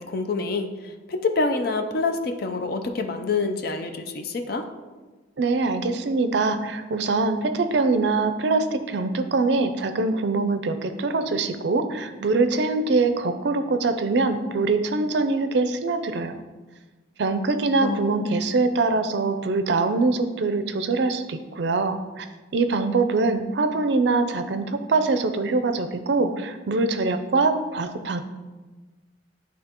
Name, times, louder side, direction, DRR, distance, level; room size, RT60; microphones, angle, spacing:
voice 1, 0.0-4.7 17.8-18.3, left 3 dB, 50° left, 6 dB, 0.5 m, -27 dB
voice 2, 5.4-16.4 17.2-22.3 22.5-28.2, right 3 dB, 60° right, 8 dB, 0.4 m, -23 dB
11.0 x 3.6 x 2.9 m, 1.3 s
head